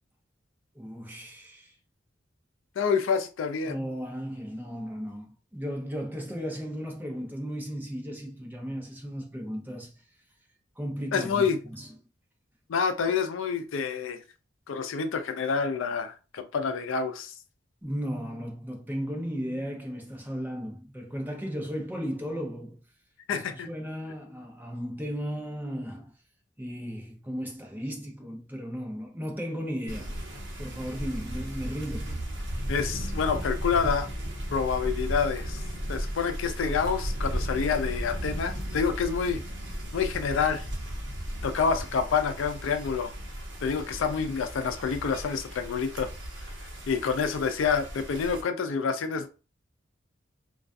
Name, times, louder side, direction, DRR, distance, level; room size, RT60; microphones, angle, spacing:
voice 1, 0.8-1.7 3.6-9.9 10.8-11.9 17.8-22.8 23.3-26.1 26.6-30.2 30.6-32.3, equal, 10° right, 0.6 m, -35 dB
voice 2, 2.8-3.8 11.1-11.6 12.7-14.2 14.7-17.3 23.3-23.7 32.7-34.1 34.5-35.6 35.9-39.4 39.9-40.7 41.4-43.1 43.6-46.1 46.9-49.3, left 6 dB, 90° left, 0.4 m, -28 dB
sound 1, 29.9-48.4, equal, 65° right, 0.9 m, -35 dB
2.3 x 2.3 x 2.5 m
head